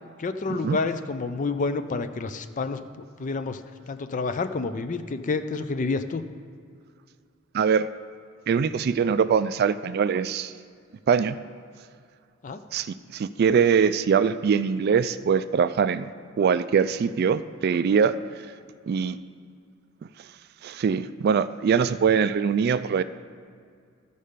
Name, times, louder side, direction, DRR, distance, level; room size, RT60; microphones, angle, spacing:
voice 1, 0.2-3.6 3.9-6.2 12.4-12.6, left 3 dB, 40° left, 10 dB, 0.5 m, -29 dB
voice 2, 7.5-7.9 8.5-10.5 11.1-11.4 12.7-18.1 18.9-19.2 20.6-23.0, right 6 dB, 50° right, 13 dB, 0.3 m, -23 dB
13.5 x 5.4 x 5.0 m, 2.2 s
head